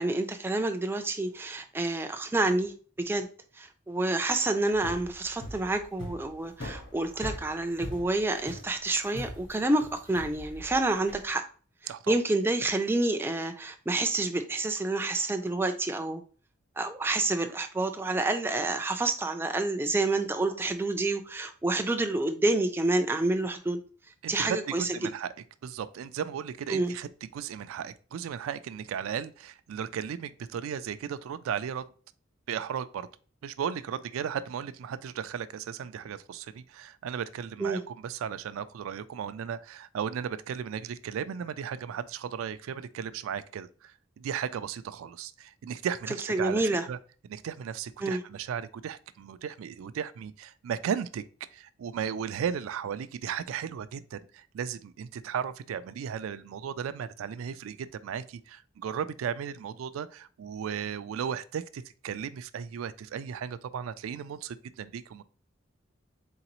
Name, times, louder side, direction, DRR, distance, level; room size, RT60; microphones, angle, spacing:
voice 1, 0.0-3.3 3.6-11.4 11.8-16.2 16.8-23.8 24.3-25.0 26.7-26.9 37.6-37.8 46.3-46.9 48.0-48.2, right 2 dB, 10° right, 0.3 m, -28 dB
sound 1, 4.7-11.3, left 1 dB, 60° left, 1.5 m, -41 dB
voice 2, 11.9-12.2 24.2-25.3 25.6-31.9 32.5-33.1 33.4-47.0 47.3-51.2 51.5-65.2, right 8 dB, 90° right, 0.3 m, -35 dB
3.9 x 3.9 x 2.9 m
head